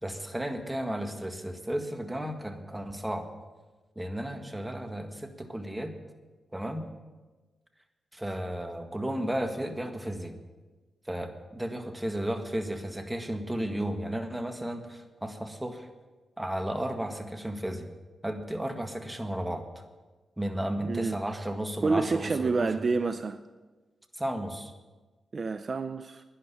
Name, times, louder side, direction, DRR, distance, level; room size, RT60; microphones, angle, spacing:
voice 1, 0.0-3.3 4.0-5.9 6.5-6.9 8.1-10.3 11.1-15.9 16.4-17.9 18.2-19.6 20.4-22.7 24.1-24.7, right 1 dB, 10° right, 6 dB, 1.8 m, -33 dB
voice 2, 20.8-21.4 21.8-23.4 25.3-26.2, right 4 dB, 50° right, 11 dB, 0.5 m, -28 dB
11.5 x 10.5 x 7.1 m, 1.3 s
cardioid pair, 55°, 0 cm